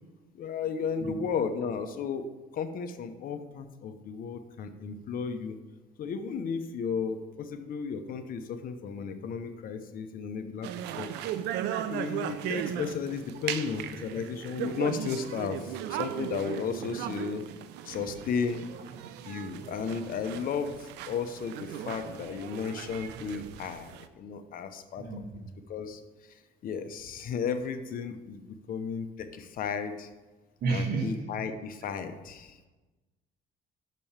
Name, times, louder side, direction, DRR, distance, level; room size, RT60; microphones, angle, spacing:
voice 1, 0.3-2.2 2.5-5.6 6.0-10.7 11.0-11.1 11.9-17.4 17.8-18.7 19.2-25.2 25.7-26.0 26.3-30.1 30.7-32.6, left 6 dB, 55° left, 8 dB, 0.8 m, -34 dB
sound 1, 10.6-24.1, right 11 dB, 90° right, 0.5 m, -37 dB
voice 2, 25.0-25.4 30.6-31.3, right 4 dB, 60° right, -2 dB, 1.7 m, -31 dB
6.5 x 5.3 x 7.2 m, 1.2 s
cardioid pair, 110°, 17 cm